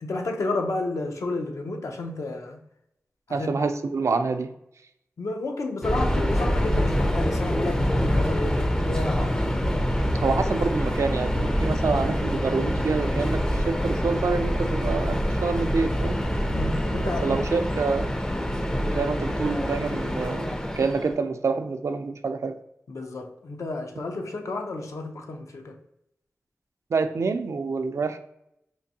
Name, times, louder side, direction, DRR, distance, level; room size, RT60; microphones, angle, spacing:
voice 1, 0.0-2.6 3.3-3.5 5.2-9.5 16.5-17.4 22.9-25.8, left 2 dB, 75° left, 3 dB, 0.6 m, -31 dB
voice 2, 3.3-4.5 10.2-16.2 17.2-18.1 18.8-22.6 26.9-28.2, right 4 dB, 70° right, 8 dB, 0.3 m, -27 dB
Subway metro underground, 5.8-21.2, equal, 15° left, 0.4 m, -25 dB
4.4 x 2.6 x 2.7 m, 0.80 s
wide cardioid pair, 55°, 5 cm